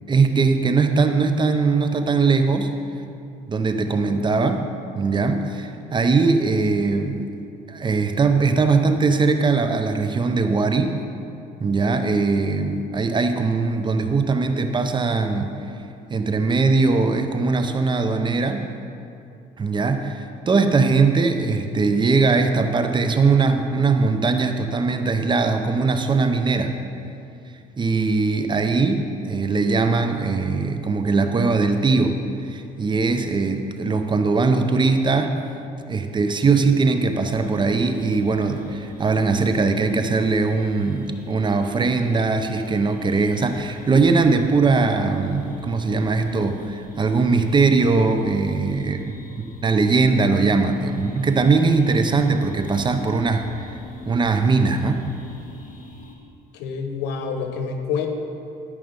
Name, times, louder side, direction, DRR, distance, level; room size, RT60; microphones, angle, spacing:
voice 1, 0.1-2.7 3.5-4.7 4.9-7.2 7.7-11.0 11.6-15.5 16.1-18.6 19.6-26.7 27.8-32.2 32.5-35.4 35.9-53.8 54.1-55.1, right 4 dB, 30° right, 7 dB, 0.7 m, -20 dB
sound 1, 37.2-56.1, left 2 dB, 50° left, 1.7 m, -44 dB
voice 2, 56.5-58.1, left 6 dB, 90° left, 4 dB, 1.0 m, -27 dB
13.0 x 5.0 x 5.2 m, 2.6 s
cardioid pair, 110°, 17 cm